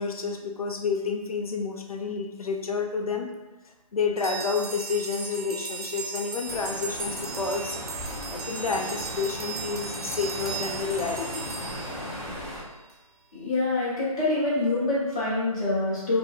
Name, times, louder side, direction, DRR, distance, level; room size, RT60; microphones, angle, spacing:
voice 1, 0.0-3.3 3.6-7.8 8.3-11.5, left 5 dB, 75° left, 2 dB, 0.4 m, -30 dB
sound 1, 4.2-12.7, right 4 dB, 85° right, 0.6 m, -37 dB
sound 2, 6.4-12.6, left 1 dB, 5° right, 0.7 m, -37 dB
voice 2, 13.3-16.2, left 2 dB, 10° left, -10 dB, 0.4 m, -26 dB
2.3 x 2.1 x 3.1 m, 1.1 s
figure-of-eight pair, 145°, 19 cm